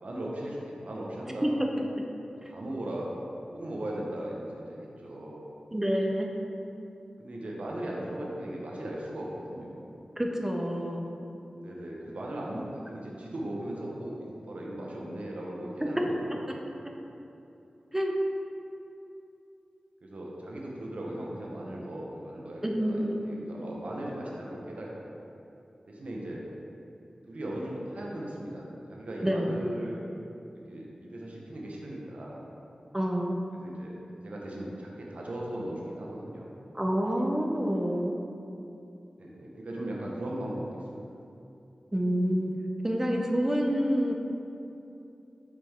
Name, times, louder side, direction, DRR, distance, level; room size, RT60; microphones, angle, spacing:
voice 1, 0.0-1.5 2.3-3.1 3.5-5.4 7.2-9.8 11.6-14.1 14.5-16.4 20.0-25.1 25.9-26.4 27.3-30.0 30.7-32.4 33.6-33.9 34.2-36.6 39.2-40.6, right 1 dB, 70° right, -3 dB, 1.1 m, -38 dB
voice 2, 1.4-2.0 2.4-2.5 5.7-6.3 10.2-11.1 15.8-15.9 17.9-18.1 22.6-23.2 29.2-29.5 32.9-33.4 36.7-38.2 41.9-42.5 42.8-44.1, equal, 15° right, 1 dB, 0.6 m, -28 dB
6.8 x 5.2 x 3.6 m, 2.8 s
wide cardioid pair, 90°, 2 cm